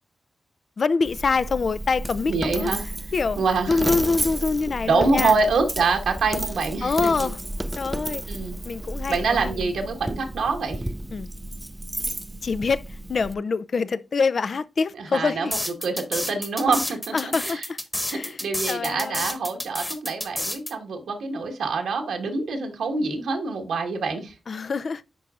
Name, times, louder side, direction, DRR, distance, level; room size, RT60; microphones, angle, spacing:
voice 1, 0.8-2.7 3.1-3.4 3.7-5.3 6.8-7.4 7.8-8.2 8.7-9.7 11.1-11.3 12.4-15.5 17.1-17.8 18.1-18.4 18.7-19.3 24.5-25.0, left 4 dB, 60° left, 0.4 m, -25 dB
Coin (dropping), 1.0-13.3, right 1 dB, 15° right, 0.4 m, -32 dB
voice 2, 2.3-2.8 3.4-3.9 4.8-7.3 8.3-8.6 9.1-10.8 14.9-17.7 18.1-24.3, right 4 dB, 90° right, 1.5 m, -25 dB
sound 1, 15.5-20.7, left 1 dB, 15° left, 1.2 m, -29 dB
10.0 x 4.6 x 2.4 m
cardioid pair, 65°, 0 cm